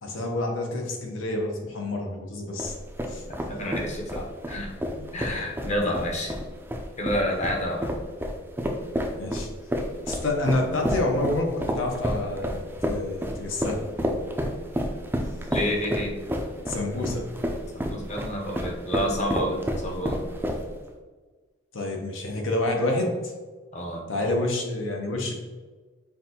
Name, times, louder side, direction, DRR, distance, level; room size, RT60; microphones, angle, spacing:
voice 1, 0.0-2.7 3.1-3.2 5.0-5.1 9.2-9.5 10.1-13.8 16.7-17.3 21.7-23.2 24.1-25.3, left 2 dB, 85° left, 1 dB, 0.8 m, -28 dB
sound 1, 2.6-20.9, equal, 10° right, 0.4 m, -30 dB
voice 2, 3.3-4.8 5.1-6.4 7.0-7.9 15.5-16.2 17.7-20.2 23.7-24.0, equal, 35° left, 0 dB, 0.7 m, -29 dB
5.8 x 2.5 x 2.8 m, 1.4 s
head